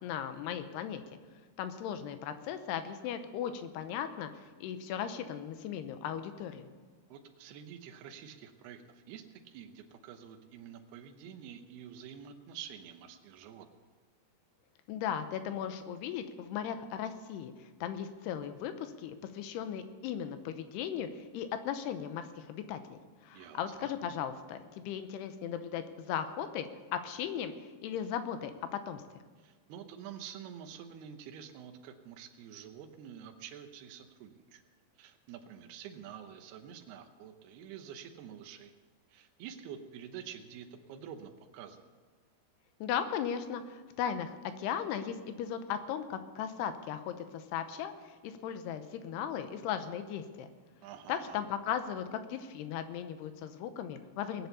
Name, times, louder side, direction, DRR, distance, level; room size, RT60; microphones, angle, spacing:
voice 1, 0.0-1.0 1.6-6.7 14.9-26.7 26.9-27.5 27.8-29.0 42.8-47.9 48.2-50.5 51.1-54.5, left 9 dB, 90° left, 9 dB, 3.0 m, -37 dB
voice 2, 7.1-13.7 23.3-23.9 29.4-34.6 35.0-38.7 39.1-41.9 50.8-51.4, right 8 dB, 80° right, 5 dB, 2.9 m, -48 dB
20.0 x 8.1 x 6.9 m, 1.5 s
omnidirectional pair, 4.6 m